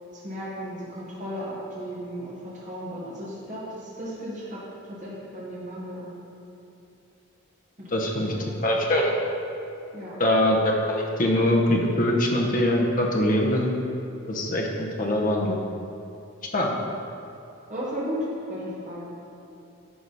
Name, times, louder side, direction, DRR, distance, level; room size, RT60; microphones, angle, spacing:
voice 1, 0.2-4.6 4.9-6.2 7.8-7.9 8.2-8.6 9.9-10.2 17.7-18.2 18.5-19.1, equal, 35° right, -8 dB, 1.5 m, -35 dB
voice 2, 7.9-8.3 8.6-9.1 10.2-13.7 14.3-15.6 16.5-16.7, left 1 dB, 40° left, 0 dB, 0.9 m, -23 dB
11.0 x 4.9 x 4.1 m, 2.8 s
head